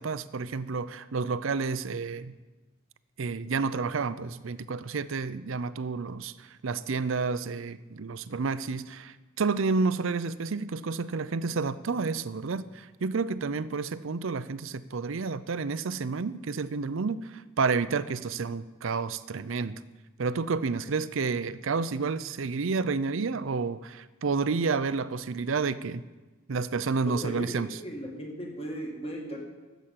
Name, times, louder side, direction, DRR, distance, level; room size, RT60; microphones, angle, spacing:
voice 1, 0.0-2.3 3.2-19.8 20.2-26.0 26.5-27.8, right 4 dB, 65° right, 15 dB, 0.5 m, -30 dB
voice 2, 27.0-29.4, equal, 30° left, 0 dB, 2.1 m, -37 dB
13.0 x 8.1 x 7.5 m, 1.2 s
head